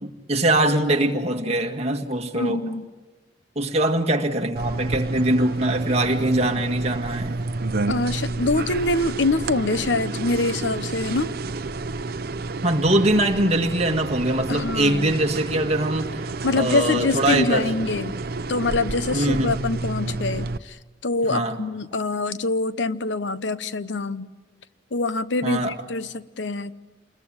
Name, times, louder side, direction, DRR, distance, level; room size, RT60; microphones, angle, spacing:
voice 1, 0.0-2.6 3.6-7.4 12.6-16.3 16.6-17.7 19.1-19.6 21.3-21.6 25.4-25.8, right 1 dB, 35° right, 1.9 m, -22 dB
voice 2, 2.3-2.9 7.9-11.3 14.5-15.1 16.4-18.2 18.5-24.3 24.9-26.7, left 2 dB, 70° left, 0.9 m, -25 dB
sound 1, 4.6-20.6, right 3 dB, 55° right, 0.8 m, -30 dB
28.5 x 21.0 x 8.8 m
head